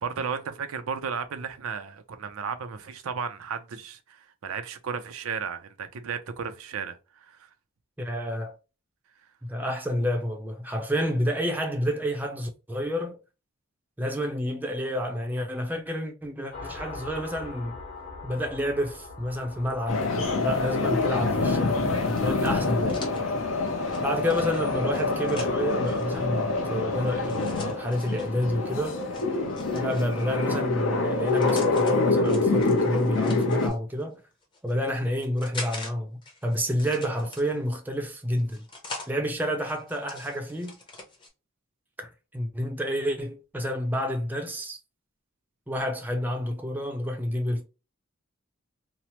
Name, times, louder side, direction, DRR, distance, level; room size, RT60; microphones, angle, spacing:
voice 1, 0.0-7.4, right 6 dB, 85° right, 0.5 m, -34 dB
voice 2, 8.0-8.5 9.4-13.2 14.0-17.8 18.2-23.0 24.0-29.1 29.7-34.2 34.6-38.6 39.1-40.8 42.0-44.8 45.7-47.6, equal, 10° right, 0.5 m, -29 dB
sound 1, 16.5-25.8, left 3 dB, 50° left, 1.3 m, -45 dB
sound 2, 19.9-33.7, left 3 dB, 70° left, 0.7 m, -26 dB
sound 3, 21.9-26.1 27.2-28.3 29.1-30.4 31.1-31.9 32.2-33.8 34.4-35.9 36.2-37.8 38.3-39.1 39.6-41.3, left 2 dB, 25° left, 0.7 m, -43 dB
3.0 x 2.0 x 2.8 m
head